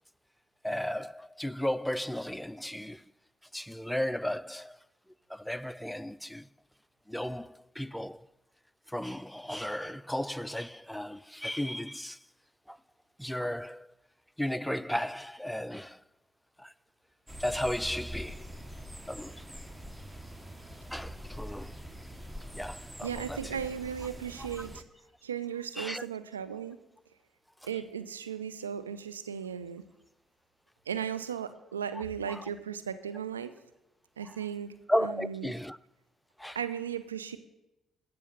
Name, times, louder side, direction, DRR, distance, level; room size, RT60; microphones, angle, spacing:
voice 1, 0.6-3.0 3.5-4.8 5.3-6.5 7.1-8.3 8.9-12.2 12.7-12.8 13.2-13.9 14.4-16.0 16.6-16.7 17.4-18.5 19.1-19.4 20.9-21.8 22.6-23.6 25.8-26.0 32.3-32.4 34.9-35.8 36.4-36.6, equal, 5° left, 0.4 m, -34 dB
sound 1, 17.3-24.8, equal, 10° right, 0.9 m, -44 dB
voice 2, 23.0-24.8 25.2-26.8 27.6-29.8 30.9-33.5 34.2-34.8 35.0-35.5 36.5-37.4, right 8 dB, 85° right, 0.4 m, -36 dB
13.5 x 5.7 x 6.6 m
figure-of-eight pair, 45°, 0 cm